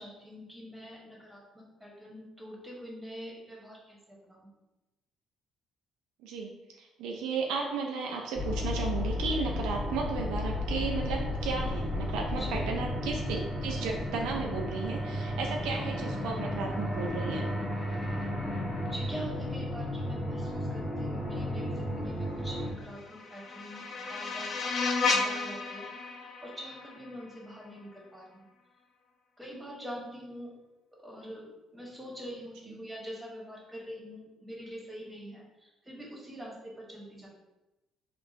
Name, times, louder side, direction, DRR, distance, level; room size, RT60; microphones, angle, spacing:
voice 1, 0.0-4.5 12.3-12.6 18.9-24.6 25.0-25.9 26.4-28.4 29.4-30.5 31.0-31.4 31.7-37.3, equal, 10° right, -3 dB, 1.3 m, -44 dB
voice 2, 6.8-17.5, right 4 dB, 80° right, 1 dB, 0.4 m, -34 dB
sound 1, 8.4-22.7, left 1 dB, 20° left, 1.0 m, -33 dB
sound 2, 22.8-27.8, left 4 dB, 55° left, 0.4 m, -33 dB
3.6 x 2.4 x 2.6 m, 1.0 s
supercardioid pair, 65°, 0 cm